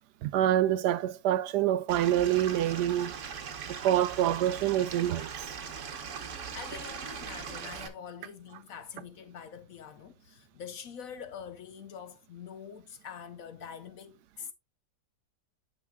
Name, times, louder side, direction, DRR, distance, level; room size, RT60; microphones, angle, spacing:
voice 1, 0.2-3.1 3.7-5.3, right 12 dB, 75° right, 1.1 m, -26 dB
Stream / Liquid, 1.9-7.9, right 6 dB, 50° right, 1.2 m, -40 dB
voice 2, 6.5-14.5, left 7 dB, 65° left, 1.0 m, -45 dB
9.7 x 6.5 x 2.3 m
omnidirectional pair, 1.8 m